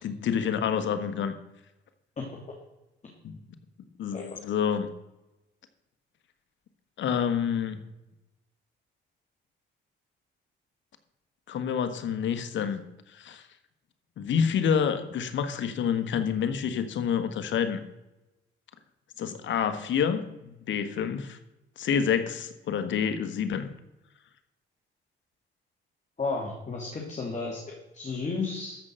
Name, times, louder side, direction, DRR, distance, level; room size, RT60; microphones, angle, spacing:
voice 1, 0.0-1.3 3.2-3.4 4.0-4.9 7.0-7.8 11.5-12.8 13.1-13.4 14.2-17.8 19.2-21.4 21.8-23.7, left 7 dB, 70° left, 10 dB, 1.4 m, -28 dB
voice 2, 26.2-28.8, left 4 dB, 35° left, -1 dB, 2.9 m, -33 dB
13.5 x 5.6 x 7.6 m, 0.96 s
cardioid pair, 90°, 20 cm